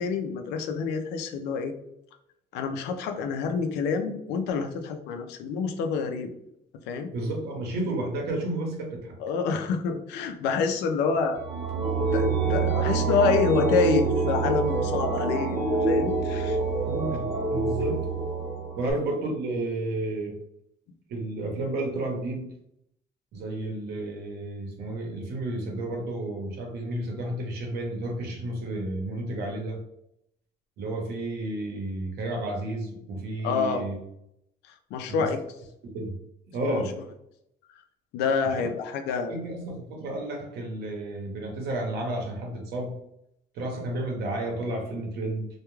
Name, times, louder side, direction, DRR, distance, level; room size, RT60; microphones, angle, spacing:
voice 1, 0.0-1.7 2.5-6.3 6.9-7.1 9.2-11.4 12.1-16.6 33.4-33.8 34.9-35.4 36.6-36.8 38.1-39.4, left 5 dB, 90° left, 6 dB, 0.4 m, -27 dB
voice 2, 7.1-9.2 16.9-18.1 18.8-20.3 21.1-22.5 23.3-29.8 30.8-34.0 35.1-35.3 35.8-36.2 36.5-36.9 38.4-38.7 39.3-43.0 43.5-45.5, right 1 dB, 70° right, 2 dB, 0.8 m, -32 dB
sound 1, 11.4-18.9, right 4 dB, 40° right, 0.8 m, -26 dB
2.2 x 2.2 x 3.0 m, 0.78 s
cardioid pair, 110°, 17 cm